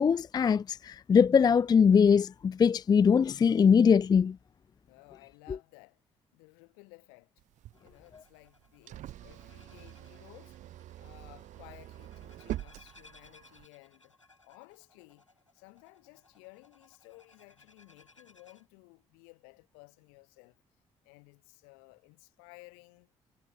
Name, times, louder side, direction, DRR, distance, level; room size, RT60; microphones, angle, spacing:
voice 1, 0.0-4.4, left 6 dB, 25° left, 0.4 m, -22 dB
voice 2, 4.9-6.0 6.3-7.3 7.8-14.2 14.4-15.3 15.5-20.6 21.0-23.1, left 40 dB or more, 70° left, 4.3 m, -56 dB
sound 1, 7.4-13.7, right 13 dB, 55° right, 0.8 m, -45 dB
sound 2, 7.7-18.7, left 3 dB, 90° left, 3.6 m, -63 dB
figure-of-eight pair, 45°, 15 cm